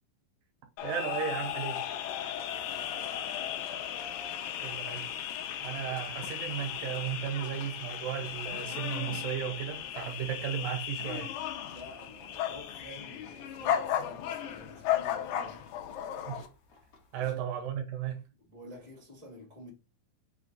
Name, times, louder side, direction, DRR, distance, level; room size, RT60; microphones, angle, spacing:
sound 1, 0.8-16.5, left 10 dB, 80° left, 2.2 m, -35 dB
voice 1, 0.8-1.8 4.6-5.1 5.6-11.3 16.3-16.5 17.1-18.2, right 9 dB, 75° right, 2.4 m, -35 dB
voice 2, 2.1-3.7 11.7-15.7 17.2-17.4 18.4-19.7, left 1 dB, 20° left, 0.4 m, -51 dB
sound 2, 11.7-17.4, left 3 dB, 60° left, 1.5 m, -60 dB
5.8 x 2.3 x 3.9 m
omnidirectional pair, 4.2 m